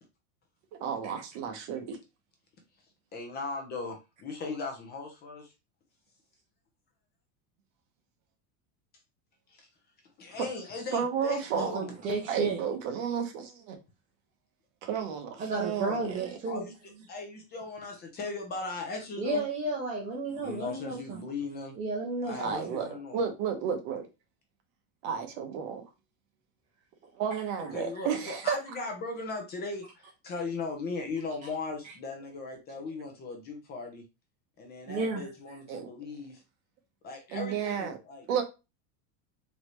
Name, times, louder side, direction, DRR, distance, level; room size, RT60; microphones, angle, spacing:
voice 1, 0.8-2.0 10.9-11.7 12.3-13.8 14.8-16.3 22.4-24.0 25.0-25.8 27.2-28.6 35.7-35.9 37.3-38.0 38.3-38.4, right 7 dB, 55° right, 1.0 m, -32 dB
voice 2, 3.1-5.5 9.5-9.7 10.2-11.9 16.5-16.7 17.1-19.4 20.4-21.7 22.3-23.2 27.6-34.0 34.6-36.4 37.0-38.3, left 3 dB, 20° left, 0.7 m, -38 dB
voice 3, 11.5-12.6 15.4-16.6 19.2-21.2 21.8-22.6 27.3-27.4 34.9-35.2, right 3 dB, 15° right, 0.5 m, -32 dB
4.0 x 3.0 x 3.1 m
supercardioid pair, 170°, 43 cm